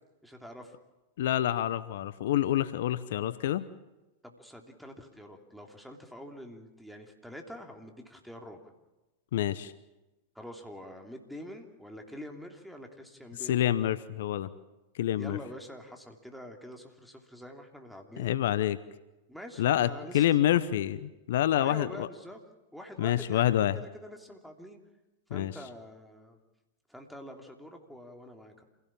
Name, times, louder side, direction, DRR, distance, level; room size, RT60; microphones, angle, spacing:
voice 1, 0.2-0.7 4.2-8.7 10.3-13.6 15.1-18.4 19.3-20.6 21.6-22.4 22.7-24.8 25.3-26.4 26.9-28.6, equal, ahead, 3 dB, 3.0 m, -46 dB
voice 2, 1.2-3.7 9.3-9.7 13.5-14.5 14.9-15.4 18.2-18.8 19.6-22.1 23.0-23.8 25.3-25.6, left 12 dB, 65° left, 15 dB, 0.8 m, -27 dB
27.0 x 17.0 x 7.3 m, 1.1 s
hypercardioid pair, 100°, 0 cm